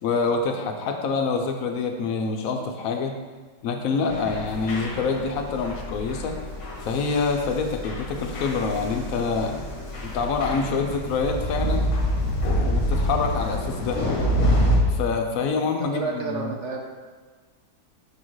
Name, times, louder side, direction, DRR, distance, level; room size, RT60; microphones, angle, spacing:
voice 1, 0.0-3.1 3.6-6.4 6.8-9.5 10.0-11.9 12.4-14.0 14.9-16.5, left 4 dB, 70° left, 4 dB, 0.8 m, -26 dB
sound 1, 4.1-14.8, equal, 50° left, 1.2 m, -27 dB
voice 2, 15.5-16.8, right 4 dB, 55° right, 1 dB, 0.8 m, -31 dB
6.3 x 5.5 x 3.1 m, 1.4 s
omnidirectional pair, 1.8 m